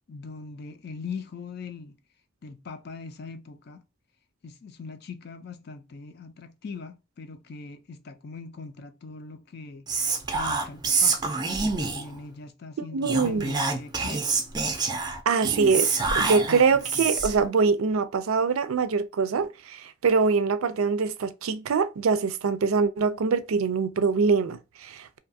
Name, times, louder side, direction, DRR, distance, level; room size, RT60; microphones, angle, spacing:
voice 1, 0.1-2.0 2.4-3.8 4.4-9.9 10.3-11.2 11.6-14.3 16.5-17.1, left 4 dB, 50° left, 0.4 m, -41 dB
Whispering, 9.9-12.2 13.0-17.5, right 4 dB, 20° right, 0.4 m, -27 dB
voice 2, 12.9-13.4 15.3-25.2, right 5 dB, 85° right, 0.4 m, -24 dB
2.7 x 2.3 x 2.6 m
head